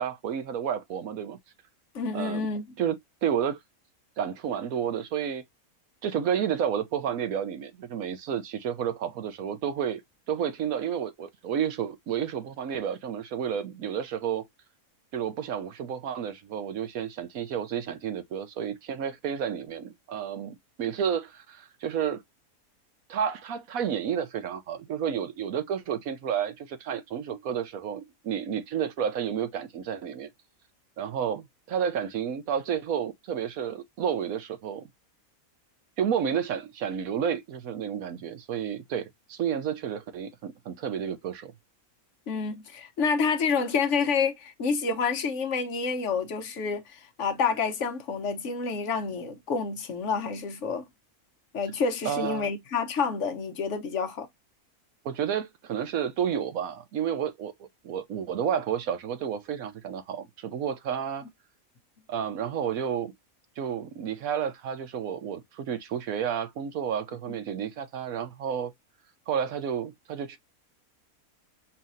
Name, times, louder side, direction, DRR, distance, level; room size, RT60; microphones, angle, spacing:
voice 1, 0.0-1.4 2.1-2.5 2.8-3.6 4.2-5.4 6.0-10.0 10.3-14.4 15.1-22.2 23.1-30.3 31.0-34.9 36.0-41.5 52.0-52.5 55.0-57.5 57.8-61.2 62.1-63.1 63.6-68.7 69.3-70.4, right 8 dB, 70° right, 1.2 m, -31 dB
voice 2, 1.9-2.6 42.3-50.8 51.5-54.3, left 5 dB, 60° left, 1.2 m, -28 dB
5.6 x 2.9 x 2.6 m
omnidirectional pair, 1.5 m